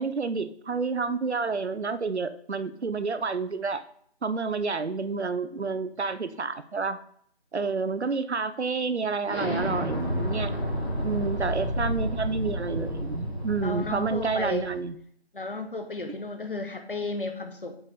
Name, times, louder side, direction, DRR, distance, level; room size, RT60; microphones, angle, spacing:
voice 1, 0.0-3.8 4.2-7.0 7.5-10.5 11.0-15.0, right 4 dB, 85° right, 13 dB, 0.7 m, -29 dB
Explosion, 9.3-14.8, equal, 70° left, 3.1 m, -31 dB
voice 2, 13.6-14.7 15.3-17.8, left 3 dB, 55° left, 7 dB, 1.0 m, -34 dB
7.3 x 4.7 x 4.1 m, 0.64 s
figure-of-eight pair, 165°, 32 cm